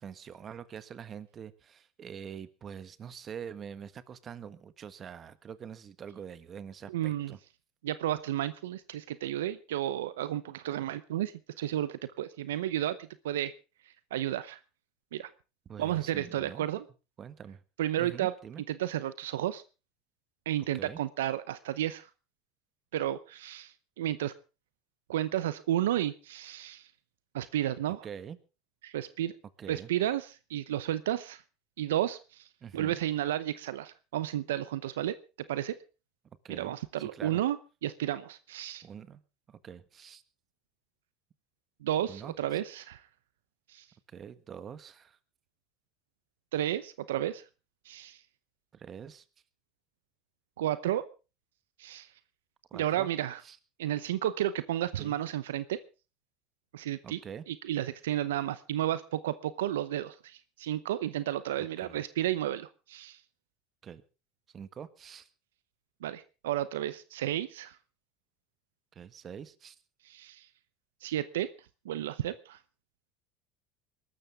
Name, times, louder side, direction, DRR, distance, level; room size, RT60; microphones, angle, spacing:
voice 1, 0.0-7.4 15.6-16.7 17.2-17.6 18.0-18.6 20.7-21.0 28.0-28.4 29.6-29.9 32.6-33.0 36.4-37.4 38.8-39.2 39.5-40.2 42.1-42.3 44.1-45.2 48.7-49.2 52.7-53.1 53.4-53.6 55.0-55.2 57.0-57.4 61.8-62.0 63.8-64.0 64.5-65.3 68.9-69.7, right 7 dB, 40° right, 14 dB, 1.6 m, -45 dB
voice 2, 6.9-7.4 7.8-13.5 14.1-14.6 15.1-15.3 15.8-16.9 17.8-18.3 18.7-19.6 20.5-22.1 22.9-24.3 25.1-26.9 27.3-28.1 28.8-29.4 29.7-31.4 31.8-32.5 32.7-35.2 35.5-35.8 36.5-37.6 37.8-38.9 41.8-43.0 43.7-43.9 46.5-47.4 47.8-48.2 50.6-51.0 51.8-52.1 52.7-53.4 53.8-55.8 56.7-57.2 57.5-63.2 66.0-67.8 70.0-70.5 71.0-71.5 71.8-72.6, right 12 dB, 90° right, 15 dB, 0.7 m, -32 dB
22.5 x 13.0 x 3.6 m, 0.32 s
hypercardioid pair, 90°, 0 cm